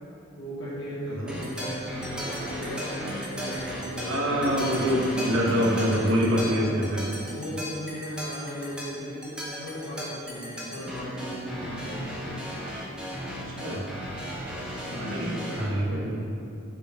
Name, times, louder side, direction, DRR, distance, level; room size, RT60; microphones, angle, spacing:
voice 1, 0.4-4.9 6.3-6.7 7.2-12.0 14.8-15.3, equal, 85° left, -10 dB, 1.2 m, -37 dB
sound 1, 1.3-15.7, equal, 5° right, 1.0 m, -35 dB
voice 2, 4.1-7.1 13.3-13.9 15.0-16.2, equal, 75° right, -3 dB, 1.2 m, -26 dB
8.2 x 4.1 x 4.2 m, 2.6 s
head